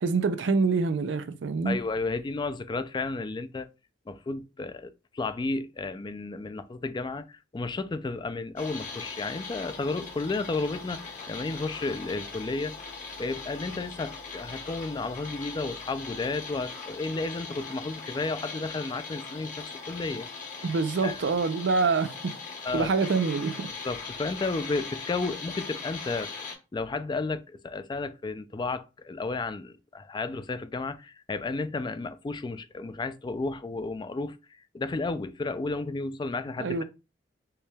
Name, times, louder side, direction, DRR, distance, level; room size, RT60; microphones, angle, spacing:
voice 1, 0.0-1.8 20.6-22.3 22.7-23.7 36.6-36.8, right 4 dB, 85° right, 0.4 m, -26 dB
voice 2, 1.7-3.7 4.1-12.8 13.2-20.3 21.0-21.2 22.6-22.9 23.8-26.3 26.7-34.4 34.7-36.8, left 3 dB, 25° left, 0.3 m, -32 dB
sound 1, 8.6-26.5, left 4 dB, 45° left, 1.2 m, -40 dB
4.5 x 2.2 x 3.3 m
head